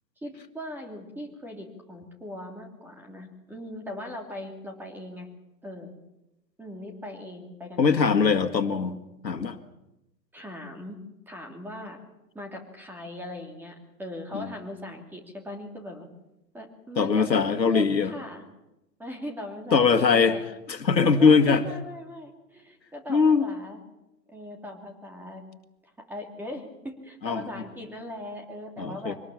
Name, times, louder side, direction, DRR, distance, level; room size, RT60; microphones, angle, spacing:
voice 1, 0.2-5.3 5.6-5.9 6.6-8.2 10.3-11.0 11.3-12.0 12.3-16.1 16.5-18.4 19.0-20.4 21.2-23.8 24.3-25.4 26.1-29.1, left 1 dB, 5° right, 3 dB, 2.8 m, -39 dB
voice 2, 7.8-9.0 9.2-9.6 14.3-14.5 17.0-18.1 19.7-20.4 20.7-21.6 23.1-23.5 27.2-27.5 28.8-29.1, left 5 dB, 80° left, 8 dB, 2.1 m, -21 dB
24.5 x 19.0 x 7.3 m, 0.94 s
figure-of-eight pair, 125°, 50 cm